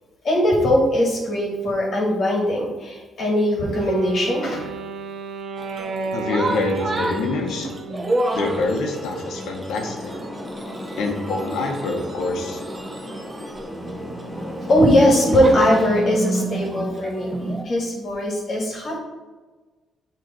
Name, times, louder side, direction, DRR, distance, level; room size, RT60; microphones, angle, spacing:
voice 1, 0.2-4.7 10.6-10.9 14.3-17.3 17.6-19.0, equal, 45° left, -3 dB, 1.7 m, -20 dB
Wind instrument woodwind instrument, 3.7-8.7, right 4 dB, 65° right, 0.6 m, -33 dB
sound 1, 5.6-17.6, right 2 dB, 25° right, 0.7 m, -30 dB
voice 2, 6.1-7.7 8.3-10.1 11.0-12.6, left 3 dB, 80° left, 2 dB, 1.0 m, -25 dB
sound 2, 8.6-15.7, equal, 10° left, 1.0 m, -35 dB
7.6 x 3.2 x 4.2 m, 1.3 s
cardioid pair, 90°, 0 cm